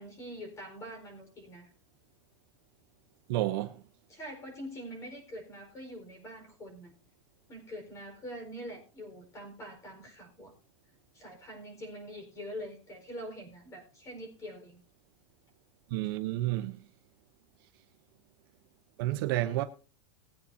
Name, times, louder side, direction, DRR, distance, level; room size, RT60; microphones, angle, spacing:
voice 1, 0.0-1.7 4.1-6.9 7.5-10.5 11.1-14.8, equal, 20° left, 4.6 m, -44 dB
voice 2, 3.3-3.8 15.9-16.8 19.0-19.6, right 15 dB, 45° right, 0.9 m, -30 dB
20.0 x 8.7 x 2.7 m
supercardioid pair, 165°, 16 cm